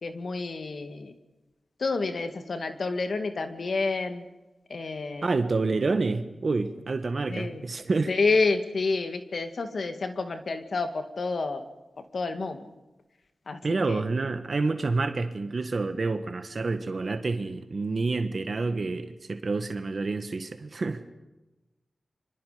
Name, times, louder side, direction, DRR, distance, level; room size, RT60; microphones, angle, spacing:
voice 1, 0.0-1.1 1.8-4.3 4.7-5.4 7.3-7.6 8.1-11.7 12.1-12.6 13.5-14.0, left 3 dB, 70° left, 7 dB, 2.1 m, -29 dB
voice 2, 5.2-8.1 13.6-21.0, right 3 dB, 55° right, 8 dB, 1.6 m, -28 dB
26.0 x 24.5 x 5.2 m, 1.0 s
wide cardioid pair, 70°, 0 cm